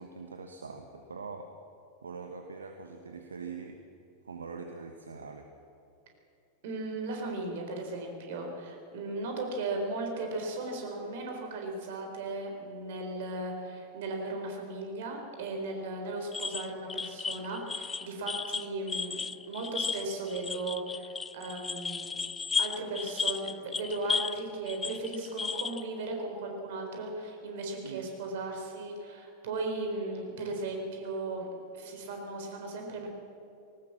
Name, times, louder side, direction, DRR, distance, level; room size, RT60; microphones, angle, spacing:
voice 1, 0.0-1.5 2.0-3.8 4.2-5.5 27.8-28.1, right 4 dB, 75° right, 5 dB, 1.3 m, -43 dB
voice 2, 6.6-22.2 22.6-31.5 31.7-33.1, right 2 dB, 55° right, 3 dB, 4.1 m, -36 dB
sound 1, 16.3-24.4 24.7-25.8, left 5 dB, 15° left, 0.4 m, -34 dB
19.5 x 18.5 x 7.5 m, 2.7 s
figure-of-eight pair, 90°, 0 cm